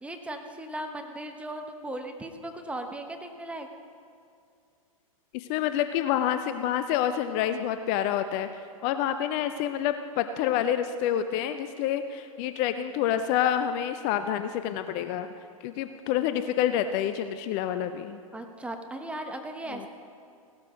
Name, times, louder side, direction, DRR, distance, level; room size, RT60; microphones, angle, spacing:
voice 1, 0.0-3.7 18.3-19.9, right 1 dB, 5° right, 5 dB, 1.1 m, -37 dB
voice 2, 5.3-8.5 8.8-15.3 15.6-18.2 19.7-19.9, left 10 dB, 40° left, 10 dB, 0.6 m, -28 dB
17.0 x 13.0 x 3.8 m, 2.4 s
hypercardioid pair, 105°, 19 cm